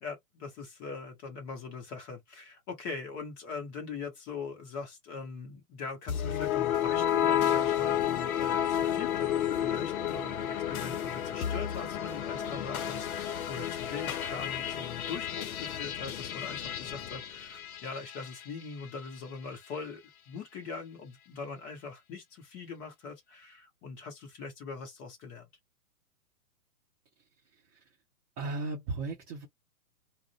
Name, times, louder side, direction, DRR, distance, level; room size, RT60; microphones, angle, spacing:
voice 1, 0.0-25.5, left 4 dB, 10° left, 0.6 m, -42 dB
sound 1, 6.1-18.4, left 10 dB, 65° left, 0.6 m, -31 dB
voice 2, 28.4-29.5, right 3 dB, 25° right, 0.8 m, -35 dB
2.4 x 2.0 x 3.4 m
hypercardioid pair, 130°, 46 cm